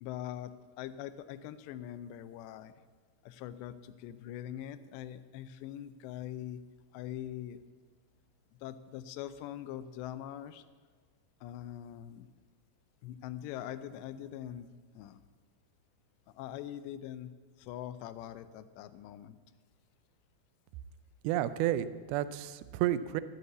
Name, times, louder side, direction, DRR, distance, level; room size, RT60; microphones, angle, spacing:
voice 1, 0.0-2.7 3.2-6.6 6.9-7.6 8.6-10.6 11.4-12.3 13.0-15.2 16.3-17.3 17.6-19.4, left 11 dB, 85° left, 13 dB, 2.8 m, -43 dB
voice 2, 21.2-23.2, right 12 dB, 85° right, 14 dB, 2.2 m, -31 dB
14.5 x 8.3 x 8.0 m, 1.5 s
omnidirectional pair, 5.0 m